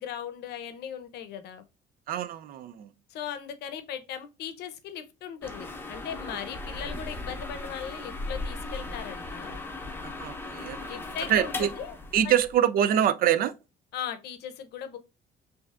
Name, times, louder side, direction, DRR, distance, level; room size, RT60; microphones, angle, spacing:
voice 1, 0.0-1.6 3.1-9.6 10.9-11.9 12.2-12.3 13.9-15.0, left 9 dB, 75° left, 0.7 m, -38 dB
voice 2, 2.1-2.9 10.0-11.0 11.3-11.7 12.1-13.5, right 10 dB, 60° right, 0.4 m, -25 dB
sound 1, 5.4-12.5, left 2 dB, 10° left, 0.7 m, -37 dB
5.5 x 2.6 x 2.4 m
cardioid pair, 110°, 17 cm